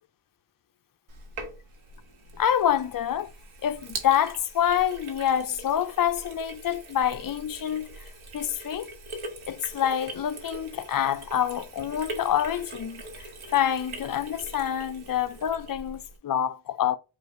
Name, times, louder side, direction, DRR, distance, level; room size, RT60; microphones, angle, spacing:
Sink (filling or washing), 1.1-16.2, right 2 dB, 85° right, 1.3 m, -42 dB
voice 1, 2.4-3.3 3.6-8.1 8.3-8.9 9.5-17.0, left 10 dB, 45° left, 0.5 m, -27 dB
5.3 x 2.5 x 3.1 m
wide cardioid pair, 105°, 48 cm